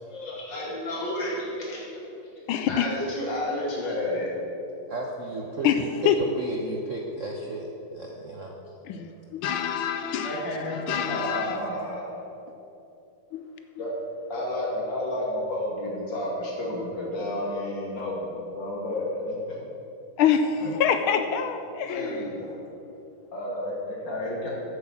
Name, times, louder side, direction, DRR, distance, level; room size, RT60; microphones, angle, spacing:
voice 1, 0.0-4.3 10.2-12.1 13.8-13.9 14.3-19.6 20.6-20.7 21.8-22.6 23.3-24.5, left 1 dB, 60° left, -5 dB, 3.1 m, -31 dB
voice 2, 2.5-2.9 5.6-6.2 8.8-11.6 13.3-13.4 13.7-13.9 20.2-22.2, left 8 dB, 80° left, 8 dB, 1.4 m, -26 dB
voice 3, 4.9-7.7 7.9-8.5, right 2 dB, 60° right, 0 dB, 0.8 m, -33 dB
8.6 x 7.8 x 7.1 m, 3.0 s
omnidirectional pair, 2.3 m